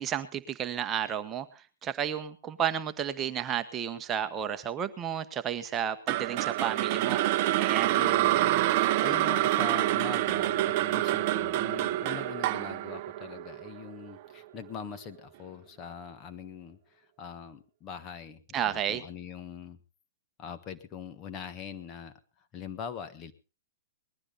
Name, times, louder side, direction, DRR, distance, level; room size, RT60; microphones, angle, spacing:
voice 1, 0.0-7.2 7.5-7.9 18.5-19.0, right 9 dB, 25° right, 9 dB, 1.1 m, -32 dB
sound 1, 6.1-14.3, right 15 dB, 45° right, 0.7 m, -27 dB
voice 2, 7.9-8.4 8.8-19.8 20.4-22.1 22.5-23.3, left 6 dB, 30° left, 9 dB, 1.5 m, -42 dB
20.0 x 12.0 x 4.0 m, 0.33 s
hypercardioid pair, 125°, 0 cm